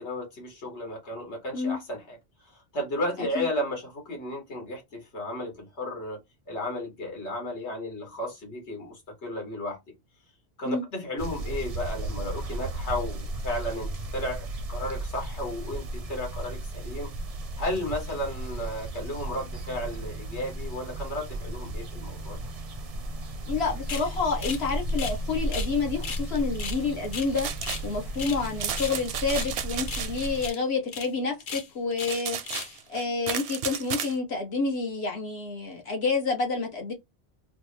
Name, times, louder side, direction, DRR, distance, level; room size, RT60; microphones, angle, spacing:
voice 1, 0.0-2.2 2.5-6.2 6.5-9.8 10.6-17.1 17.6-22.4, left 1 dB, 85° left, 1.6 m, -34 dB
sound 1, 11.2-30.5, right 1 dB, 45° right, 0.5 m, -35 dB
voice 2, 23.5-27.5 27.8-36.9, left 4 dB, 70° left, 1.4 m, -29 dB
sound 2, 23.9-24.1 24.4-24.6 24.9-25.7 26.0-26.2 26.5-27.9 28.1-28.4 28.7-29.5 29.8-30.1 30.3-30.6 30.9-31.1 31.4-32.2 32.4-32.8, left 5 dB, 55° left, 0.8 m, -36 dB
sound 3, 27.4-27.9 28.4-30.3 32.0-34.1, right 8 dB, 80° right, 0.8 m, -34 dB
3.3 x 2.0 x 3.0 m
omnidirectional pair, 1.1 m